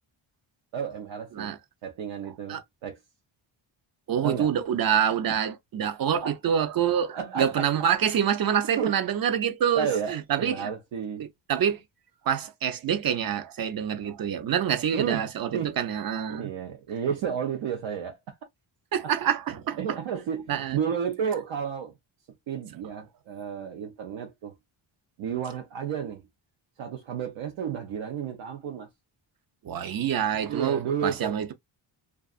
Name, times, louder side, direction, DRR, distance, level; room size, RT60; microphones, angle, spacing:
voice 1, 0.7-1.5 1.8-3.0 4.2-4.5 5.3-5.4 6.2-6.4 7.1-7.7 8.8-9.0 9.7-11.3 14.9-15.2 15.5-15.8 16.3-18.2 19.8-21.9 22.5-24.5 25.2-26.3 26.8-28.9 30.5-31.4, right 7 dB, 80° right, 0.8 m, -32 dB
voice 2, 4.1-10.7 11.5-11.8 12.3-16.5 18.9-19.8 20.5-20.8 29.6-31.5, right 8 dB, 50° right, 0.5 m, -26 dB
2.4 x 2.4 x 2.4 m
wide cardioid pair, 125°, 47 cm